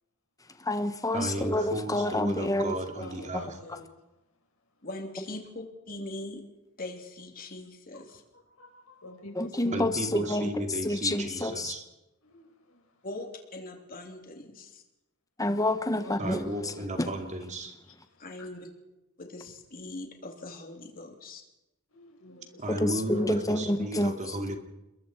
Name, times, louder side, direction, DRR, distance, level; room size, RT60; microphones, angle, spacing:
voice 1, 0.6-2.8 9.4-11.7 15.4-16.7 17.0-17.1 22.7-24.4, left 1 dB, 15° left, 9 dB, 1.2 m, -28 dB
voice 2, 1.1-3.4 9.7-11.8 16.2-17.7 22.6-24.6, right 1 dB, 35° right, 5 dB, 2.5 m, -34 dB
voice 3, 3.0-4.0 4.8-4.9 7.9-8.0 8.3-11.5 12.2-13.1 16.0-16.8 17.8-18.5 21.9-23.7, left 1 dB, 85° left, 1 dB, 4.8 m, -48 dB
voice 4, 4.8-6.4 6.8-8.2 13.0-14.8 18.2-18.7 19.2-21.4, left 2 dB, 45° left, 3 dB, 3.2 m, -41 dB
28.0 x 21.5 x 4.6 m, 0.95 s
head